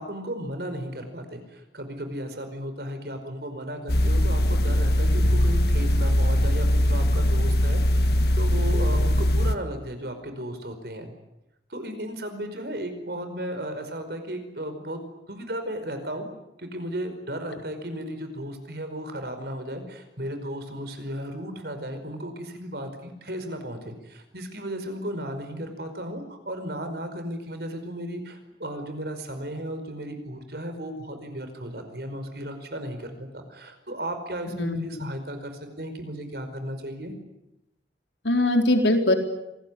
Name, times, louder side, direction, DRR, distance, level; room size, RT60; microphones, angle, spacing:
voice 1, 0.0-11.1 11.7-16.3 16.6-37.1, equal, 60° right, 8 dB, 5.0 m, -35 dB
sound 1, 3.9-9.6, left 1 dB, 60° left, 1.6 m, -21 dB
voice 2, 34.5-35.0 38.2-39.1, left 1 dB, 75° left, 4 dB, 4.2 m, -22 dB
26.5 x 20.0 x 10.0 m, 0.89 s
head